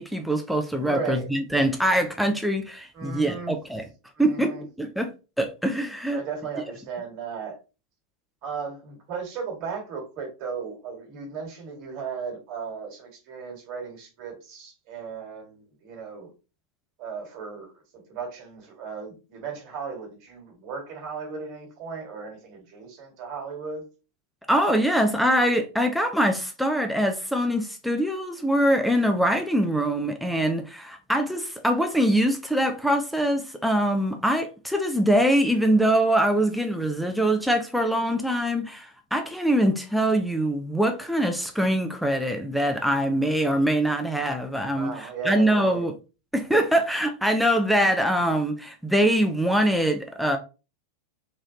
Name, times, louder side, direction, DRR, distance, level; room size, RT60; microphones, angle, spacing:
voice 1, 0.0-3.8 4.2-4.5 4.8-5.1 5.4-6.2 24.5-45.9 46.3-50.4, right 1 dB, ahead, 0.5 m, -23 dB
voice 2, 0.7-1.3 2.9-3.6 4.1-4.6 6.1-7.6 8.4-16.3 17.0-23.8 44.7-45.9, right 6 dB, 40° right, 1.6 m, -36 dB
3.8 x 3.1 x 2.7 m
figure-of-eight pair, 90°, 0 cm